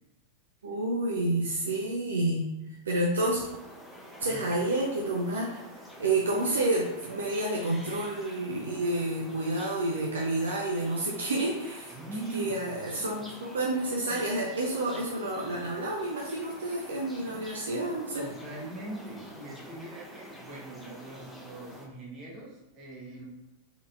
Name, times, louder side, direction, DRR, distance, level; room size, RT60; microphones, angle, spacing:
voice 1, 0.6-2.5 2.9-3.4 4.2-5.6 6.0-12.0 12.3-18.2, right 2 dB, 70° right, -2 dB, 0.6 m, -29 dB
sound 1, 3.4-21.9, equal, 5° left, 0.9 m, -48 dB
voice 2, 11.9-12.6 13.0-13.2 18.2-23.3, right 2 dB, 35° right, -3 dB, 1.4 m, -41 dB
4.0 x 3.9 x 2.6 m, 0.97 s
figure-of-eight pair, 90°, 0 cm